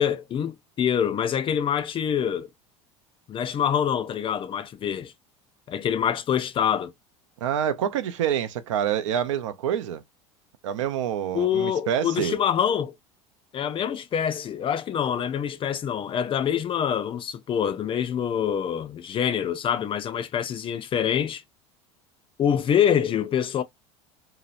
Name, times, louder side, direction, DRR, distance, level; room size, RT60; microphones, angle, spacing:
voice 1, 0.0-2.5 3.3-5.1 5.7-6.9 11.3-12.9 13.5-21.4 22.4-23.6, left 9 dB, 35° left, 0.5 m, -25 dB
voice 2, 7.4-10.0 10.6-12.4, right 9 dB, 85° right, 0.4 m, -27 dB
2.8 x 2.0 x 2.5 m
hypercardioid pair, 95°, 16 cm